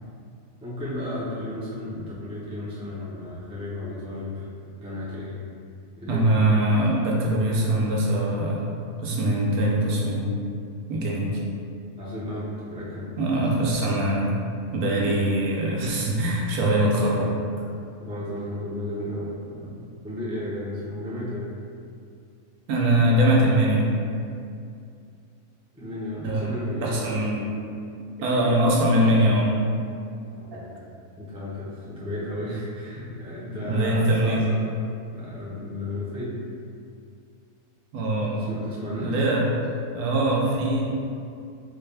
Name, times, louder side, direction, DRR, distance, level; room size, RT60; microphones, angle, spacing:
voice 1, 0.6-4.5 4.8-5.3 6.0-6.3 12.0-13.1 18.0-19.7 20.0-21.5 25.7-27.4 30.4-30.8 31.2-34.7 35.1-36.4 38.5-39.1, left 1 dB, 5° right, -8 dB, 0.5 m, -33 dB
voice 2, 6.1-8.7 9.0-10.3 10.9-11.4 13.2-14.3 14.7-17.3 22.7-23.9 26.2-27.4 28.2-29.5 30.5-30.6 33.6-34.4 37.9-38.4 39.0-39.4 39.9-40.8, right 1 dB, 90° right, -3 dB, 1.2 m, -22 dB
4.1 x 2.3 x 3.3 m, 2.4 s
omnidirectional pair, 1.5 m